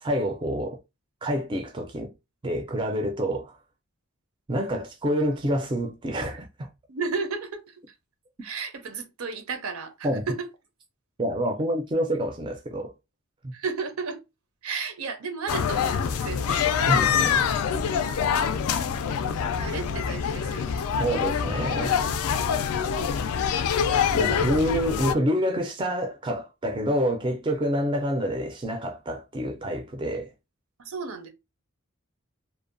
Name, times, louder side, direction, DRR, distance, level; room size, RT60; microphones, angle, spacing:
voice 1, 0.0-0.8 1.2-2.1 2.4-3.5 4.5-6.7 10.0-10.3 11.2-12.9 13.4-13.5 16.9-17.5 21.0-22.1 24.1-30.3, equal, 20° right, 0.3 m, -27 dB
voice 2, 6.9-8.0 8.4-10.5 13.5-14.2 14.6-16.7 19.6-20.8 30.8-31.3, right 4 dB, 85° right, 0.6 m, -33 dB
sound 1, 15.5-25.1, left 7 dB, 85° left, 0.3 m, -25 dB
2.6 x 2.1 x 2.5 m
head